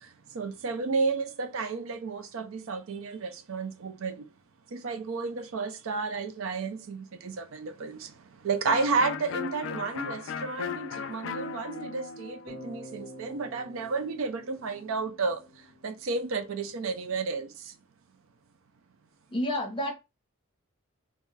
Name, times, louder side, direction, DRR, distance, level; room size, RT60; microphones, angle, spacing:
voice 1, 0.4-4.1 4.7-8.0 8.4-15.4 15.8-17.5, right 4 dB, 70° right, 0.4 m, -32 dB
Electric guitar, 8.6-14.3, left 6 dB, 60° left, 0.3 m, -38 dB
Bass guitar, 12.5-16.4, equal, 10° right, 0.8 m, -48 dB
voice 2, 19.3-19.9, left 1 dB, 25° left, 0.8 m, -29 dB
2.6 x 2.3 x 3.1 m
head